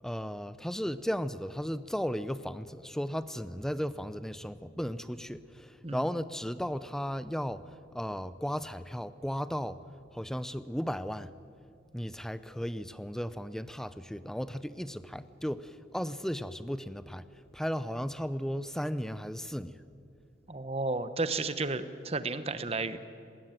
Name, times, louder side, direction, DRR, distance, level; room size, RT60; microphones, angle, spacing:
voice 1, 0.0-9.8 10.1-11.3 11.9-17.2 17.5-19.8, equal, 5° left, 14 dB, 0.5 m, -35 dB
voice 2, 20.5-23.0, right 3 dB, 30° right, 12 dB, 1.0 m, -32 dB
19.5 x 19.0 x 9.1 m, 2.5 s
head